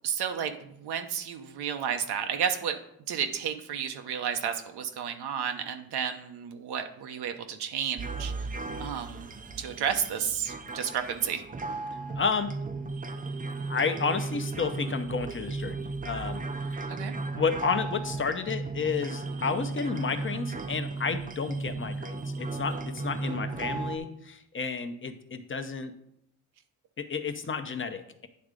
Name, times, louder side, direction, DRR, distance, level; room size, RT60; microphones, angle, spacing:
voice 1, 0.0-2.8 3.1-8.5 8.8-9.3 9.6-11.4 16.9-17.1, right 8 dB, 90° right, 6 dB, 0.9 m, -32 dB
sound 1, 8.0-24.0, right 3 dB, 20° right, 0.5 m, -35 dB
voice 2, 12.2-12.6 13.7-16.4 16.7-16.9 17.3-25.9 27.0-28.3, left 5 dB, 30° left, 8 dB, 0.8 m, -31 dB
9.4 x 3.6 x 5.1 m, 0.74 s
cardioid pair, 90°, 38 cm